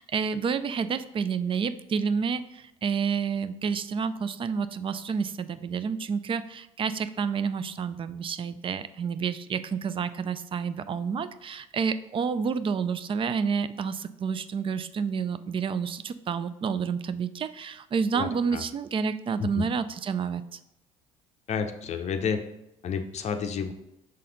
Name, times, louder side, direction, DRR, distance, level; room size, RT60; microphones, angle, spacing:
voice 1, 0.0-20.6, right 6 dB, 30° right, 13 dB, 0.4 m, -29 dB
voice 2, 18.1-18.6 19.4-19.6 21.5-22.4 22.8-23.7, left 6 dB, 45° left, 7 dB, 0.6 m, -30 dB
6.4 x 4.1 x 3.9 m, 0.89 s
hypercardioid pair, 65°, 17 cm